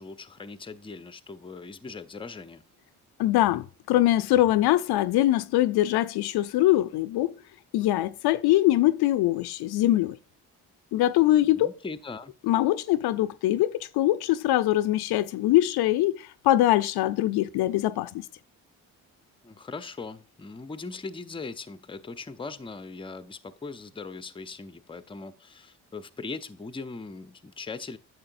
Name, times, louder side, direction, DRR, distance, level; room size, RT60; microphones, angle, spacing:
voice 1, 0.0-2.6 11.3-12.3 19.4-28.0, left 4 dB, 15° left, 0.5 m, -40 dB
voice 2, 3.2-7.3 7.7-10.2 10.9-11.7 12.4-18.2, left 14 dB, 75° left, 0.5 m, -23 dB
8.7 x 6.3 x 2.6 m
supercardioid pair, 60°, 39 cm